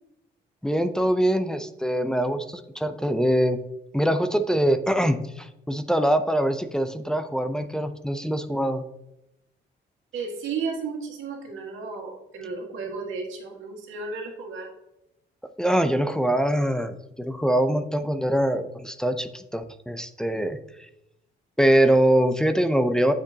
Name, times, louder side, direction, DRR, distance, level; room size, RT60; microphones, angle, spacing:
voice 1, 0.6-3.6 3.9-8.8 15.6-20.6 21.6-23.1, right 1 dB, 5° left, 8 dB, 0.5 m, -23 dB
voice 2, 10.1-14.7, right 4 dB, 80° right, 1 dB, 1.8 m, -33 dB
8.5 x 6.0 x 2.8 m, 0.86 s
cardioid pair, 90°, 20 cm